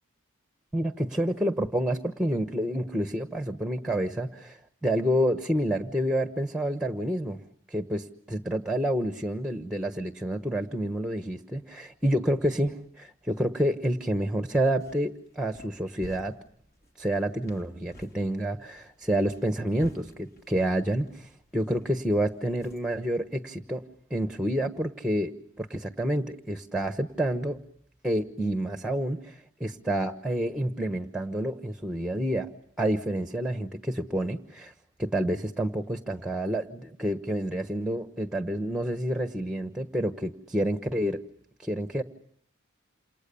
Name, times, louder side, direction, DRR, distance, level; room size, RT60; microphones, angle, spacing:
voice 1, 0.7-7.4 7.7-16.3 17.0-23.8 24.1-27.6 28.0-32.5 32.8-34.7 35.0-41.2 41.6-42.0, right 1 dB, 5° right, 8 dB, 1.1 m, -28 dB
sound 1, 14.8-23.1, equal, 50° left, 3.4 m, -53 dB
28.5 x 28.0 x 7.0 m, 0.69 s
head